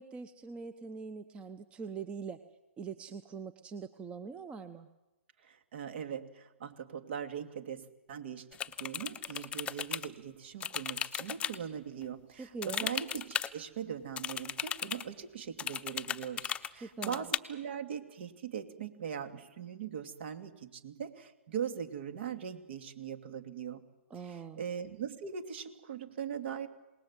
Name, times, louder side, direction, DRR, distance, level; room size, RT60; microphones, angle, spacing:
voice 1, 0.0-2.4 2.8-4.9 12.4-12.9 16.8-17.3 24.1-24.6, right 5 dB, 15° right, 11 dB, 0.9 m, -43 dB
voice 2, 5.4-8.5 8.8-23.8 24.2-26.7, right 8 dB, 55° right, 7 dB, 2.8 m, -40 dB
sound 1, 8.5-10.1 10.6-11.6 12.6-13.5 14.2-15.0 15.6-16.7 17.0-17.4, left 8 dB, 15° left, 0.8 m, -36 dB
27.5 x 19.5 x 7.6 m, 1.0 s
hypercardioid pair, 130°, 7 cm